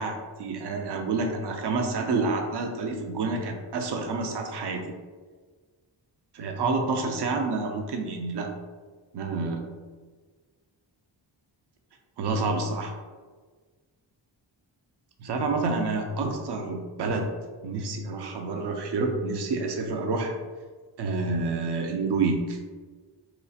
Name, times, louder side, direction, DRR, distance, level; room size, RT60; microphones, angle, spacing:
voice 1, 0.0-4.8 6.3-8.5 9.1-9.6 12.2-12.9 15.2-17.3 17.6-20.4 21.0-22.6, right 3 dB, 60° right, 3 dB, 0.5 m, -28 dB
3.1 x 2.4 x 2.6 m, 1.4 s
wide cardioid pair, 70°, 47 cm